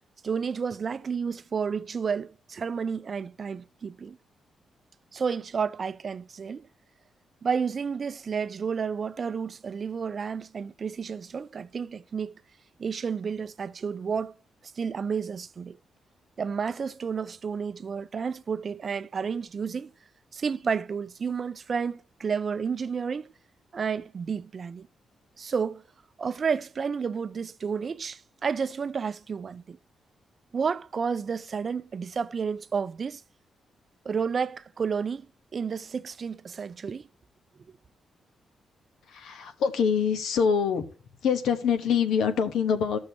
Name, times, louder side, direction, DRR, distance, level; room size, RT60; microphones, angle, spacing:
voice 1, 0.2-4.2 5.1-6.7 7.4-12.3 12.8-14.3 14.8-15.8 16.4-19.9 20.3-23.3 23.7-24.9 25.4-25.8 26.2-29.8 30.5-33.2 34.0-37.1 37.7-37.8, right 6 dB, 45° right, 0.4 m, -31 dB
voice 2, 39.1-40.9 41.2-43.0, left 7 dB, 90° left, 1.1 m, -25 dB
15.5 x 6.3 x 2.7 m
cardioid pair, 100°, 0 cm